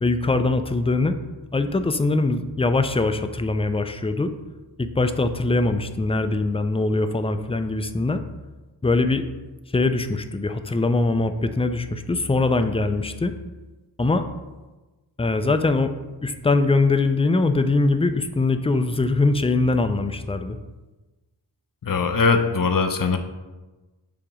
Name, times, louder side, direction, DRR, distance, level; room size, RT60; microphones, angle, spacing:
voice 1, 0.0-1.2 1.5-4.3 4.8-8.2 8.8-9.2 9.7-13.3 14.0-14.2 15.2-15.9 16.2-20.6, left 3 dB, 15° left, 9 dB, 0.3 m, -22 dB
voice 2, 21.8-23.2, left 4 dB, 50° left, 7 dB, 0.6 m, -21 dB
7.0 x 2.9 x 4.9 m, 1.2 s
wide cardioid pair, 65°, 43 cm